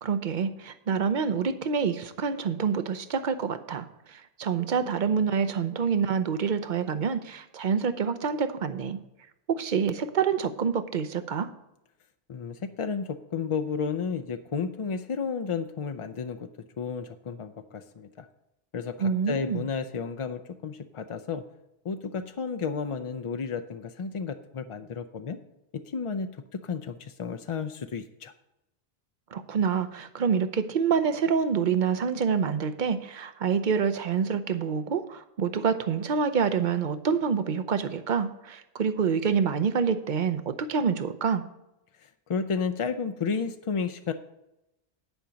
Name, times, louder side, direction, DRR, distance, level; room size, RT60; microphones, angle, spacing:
voice 1, 0.0-9.0 9.5-11.5 19.0-19.6 29.3-41.4, right 6 dB, 50° right, 11 dB, 0.8 m, -27 dB
voice 2, 12.3-16.5 16.8-18.3 18.7-21.4 21.8-25.4 25.7-28.3 42.0-44.1, left 5 dB, 50° left, 9 dB, 0.4 m, -32 dB
10.5 x 5.1 x 6.9 m, 0.90 s
omnidirectional pair, 1.1 m